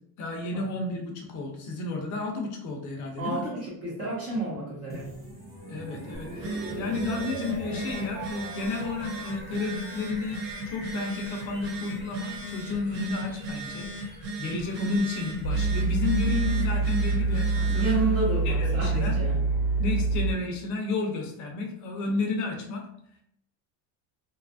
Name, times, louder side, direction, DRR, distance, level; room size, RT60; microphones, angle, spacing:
voice 1, 0.2-3.4 5.7-18.1 18.4-19.2 19.8-22.9, left 3 dB, 40° left, 2 dB, 0.5 m, -32 dB
voice 2, 3.2-5.1 17.7-19.4, right 2 dB, 45° right, -7 dB, 0.9 m, -30 dB
sound 1, 4.9-20.8, right 1 dB, 20° right, 0.5 m, -44 dB
Telephone, 6.1-18.1, right 2 dB, 80° right, 0.9 m, -37 dB
sound 2, 15.4-20.3, right 3 dB, 90° left, 0.7 m, -25 dB
2.6 x 2.3 x 2.4 m, 0.70 s
cardioid pair, 170°, 46 cm